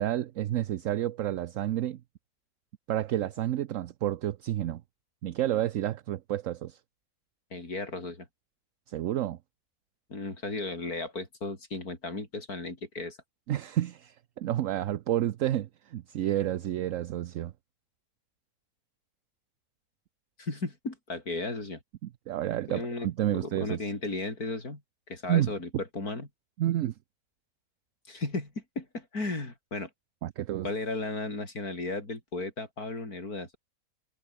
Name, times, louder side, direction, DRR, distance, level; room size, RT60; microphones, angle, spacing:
voice 1, 0.0-2.0 2.9-4.8 5.2-6.8 8.9-9.4 13.5-17.5 22.0-23.8 25.3-25.5 26.6-26.9 30.2-30.7, right 12 dB, 65° right, 1.0 m, -30 dB
voice 2, 7.5-8.3 10.1-13.2 20.4-21.8 22.7-23.1 23.4-24.8 25.1-26.3 28.1-29.9 30.6-33.6, left 3 dB, 85° left, 5.5 m, -35 dB
omnidirectional pair, 1.6 m